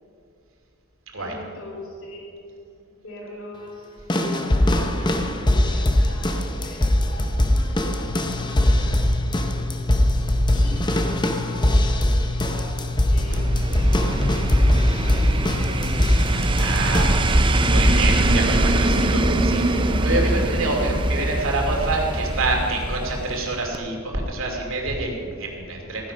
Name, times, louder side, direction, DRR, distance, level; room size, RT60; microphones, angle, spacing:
voice 1, 1.2-2.6 2.9-4.8 5.5-9.2 10.5-10.9 11.4-12.8 13.1-17.1 20.1-20.8, equal, 70° left, -2 dB, 2.9 m, -41 dB
sound 1, 4.1-17.3 17.7-18.1 18.9-19.0, left 1 dB, 20° left, 0.7 m, -21 dB
sound 2, 8.1-18.6, left 4 dB, 55° left, 0.3 m, -32 dB
sound 3, 13.1-23.5 23.7-23.8, right 1 dB, 25° right, 0.6 m, -22 dB
voice 2, 16.6-17.1 17.7-26.1, right 2 dB, 70° right, 0 dB, 2.6 m, -27 dB
15.0 x 10.0 x 5.6 m, 2.4 s
head